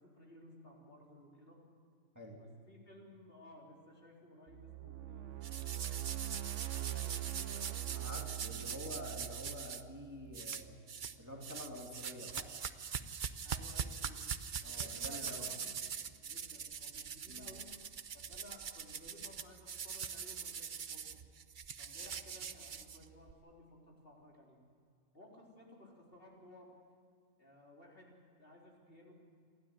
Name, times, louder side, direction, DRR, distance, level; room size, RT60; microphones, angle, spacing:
voice 1, 0.0-1.6 2.4-5.6 6.7-8.1 13.4-14.2 14.6-17.7 18.1-21.2 21.8-24.6 25.1-26.7 27.4-29.1, left 1 dB, 40° left, -2 dB, 4.3 m, -58 dB
sound 1, 4.5-10.7, right 16 dB, 65° right, 1.0 m, -43 dB
sound 2, 5.4-9.8 10.3-11.2 11.4-23.3, right 7 dB, 45° right, 0.8 m, -43 dB
voice 2, 7.9-10.8 11.2-12.5 14.6-15.5 17.3-17.5, left 1 dB, 10° right, -1 dB, 2.6 m, -47 dB
28.5 x 12.5 x 9.7 m, 2.3 s
omnidirectional pair, 1.4 m